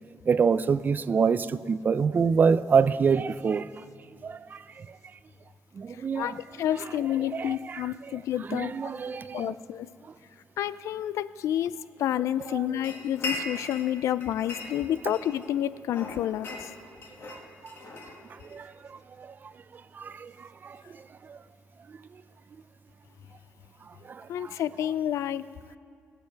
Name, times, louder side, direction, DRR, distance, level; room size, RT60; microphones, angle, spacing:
voice 1, 0.3-3.7 4.2-5.0 5.8-6.4 6.8-6.9 7.2-9.5 12.5-12.8 17.3-17.4 18.5-19.3 19.9-21.4 24.1-24.6, right 5 dB, 40° right, 0.4 m, -27 dB
voice 2, 6.6-8.7 9.3-9.9 10.6-11.7 12.0-16.5 24.3-25.4, left 11 dB, 85° left, 0.4 m, -29 dB
sound 1, 12.8-13.9 14.2-15.5 15.9-18.6, left 2 dB, 55° left, 2.1 m, -38 dB
22.5 x 7.5 x 4.6 m
cardioid pair, 115°, 5 cm